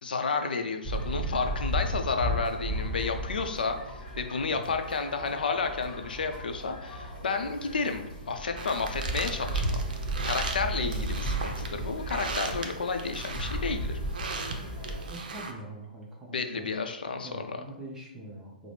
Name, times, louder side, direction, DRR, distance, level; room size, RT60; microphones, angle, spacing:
voice 1, 0.0-9.8 10.2-14.0 16.3-17.6, left 4 dB, 70° left, 6 dB, 0.5 m, -31 dB
sound 1, 0.8-15.1, right 1 dB, 15° left, 1.3 m, -35 dB
sound 2, 8.6-15.5, right 4 dB, 60° right, 0.6 m, -38 dB
voice 2, 10.8-11.2 15.1-16.7 17.2-18.7, right 1 dB, 10° right, -4 dB, 0.7 m, -43 dB
4.8 x 2.0 x 3.2 m, 0.90 s
figure-of-eight pair, 125°, 5 cm